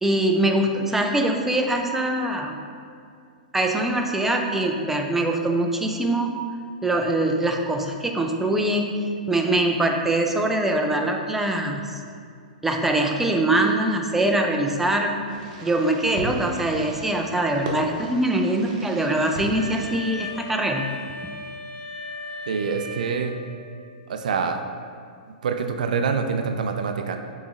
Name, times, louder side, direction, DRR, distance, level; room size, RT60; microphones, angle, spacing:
voice 1, 0.0-2.6 3.5-6.3 6.8-12.0 12.6-15.1 15.6-20.9 21.2-21.3, right 1 dB, 5° right, 2 dB, 0.4 m, -23 dB
Fireworks, 15.3-20.9, right 1 dB, 45° right, 0.9 m, -37 dB
Wind instrument woodwind instrument, 19.5-23.7, left 1 dB, 65° left, 1.3 m, -36 dB
voice 2, 22.5-23.3 24.1-24.6 25.4-27.2, right 5 dB, 70° right, 6 dB, 0.4 m, -25 dB
6.9 x 3.1 x 2.5 m, 2.3 s
hypercardioid pair, 115°, 5 cm